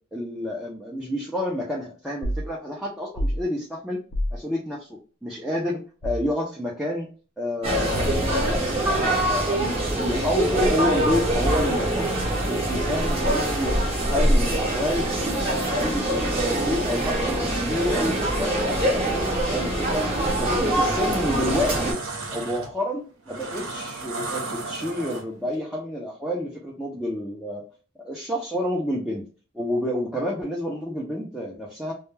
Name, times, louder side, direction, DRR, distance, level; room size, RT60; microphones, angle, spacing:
voice 1, 0.1-4.0 4.3-7.1 7.4-12.1 12.5-13.8 14.1-15.1 15.3-22.0 22.3-27.6 28.0-29.2 29.5-31.9, left 1 dB, ahead, -3 dB, 0.4 m, -29 dB
sound 1, 2.2-2.5 3.2-3.4 4.1-4.4 6.0-6.3 7.9-8.5, equal, 75° left, 0.5 m, -28 dB
sound 2, 7.6-21.9, right 1 dB, 25° right, 0.7 m, -24 dB
sound 3, 21.0-25.5, right 3 dB, 65° right, 0.7 m, -34 dB
2.1 x 2.1 x 3.1 m, 0.38 s
head